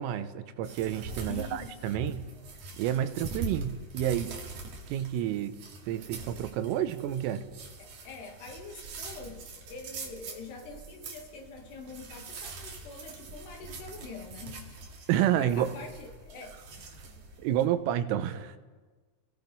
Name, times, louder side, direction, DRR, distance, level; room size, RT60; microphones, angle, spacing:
voice 1, 0.0-2.3 2.8-4.3 4.9-5.6 5.9-7.5 15.1-15.7 17.4-18.6, right 11 dB, 85° right, 10 dB, 3.7 m, -29 dB
sound 1, 0.6-17.6, right 3 dB, 45° right, 3.1 m, -43 dB
voice 2, 1.3-2.0 7.8-15.1 15.4-16.6, left 4 dB, 60° left, 3 dB, 3.7 m, -45 dB
30.0 x 19.5 x 5.4 m, 1.4 s
omnidirectional pair, 5.8 m